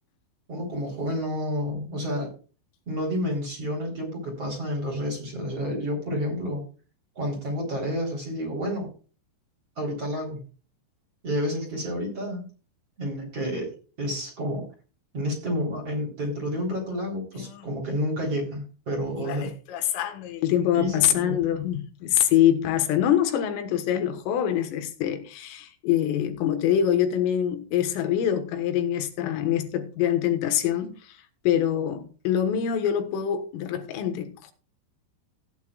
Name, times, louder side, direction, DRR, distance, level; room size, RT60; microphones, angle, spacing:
voice 1, 0.5-2.3 2.9-6.6 7.2-8.9 9.8-10.4 11.2-12.4 13.0-13.7 14.0-14.6 15.1-19.5 20.7-21.4, equal, 30° right, 4.1 m, -30 dB
voice 2, 19.3-31.2 31.5-34.5, left 10 dB, 80° left, 3.9 m, -25 dB
16.5 x 9.3 x 2.4 m
omnidirectional pair, 5.8 m